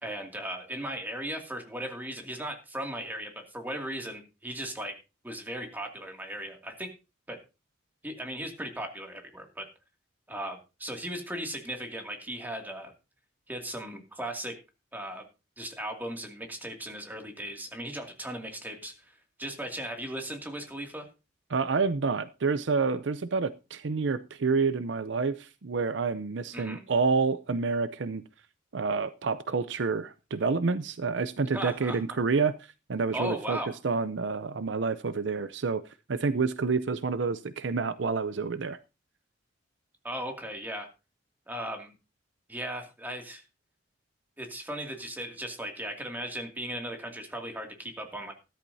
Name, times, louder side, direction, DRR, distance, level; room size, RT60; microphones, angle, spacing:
voice 1, 0.0-4.9 5.2-6.9 7.3-7.4 8.0-9.7 10.3-12.9 13.5-14.6 14.9-15.2 15.6-21.1 26.5-26.8 31.5-32.0 33.1-33.8 40.0-40.9 41.5-41.9 42.5-43.4 44.4-48.3, right 1 dB, 10° right, 2.5 m, -37 dB
voice 2, 21.5-28.2 28.7-32.6 32.9-33.6 33.8-35.8 36.1-38.8, right 4 dB, 70° right, 0.6 m, -28 dB
14.0 x 13.0 x 2.8 m
head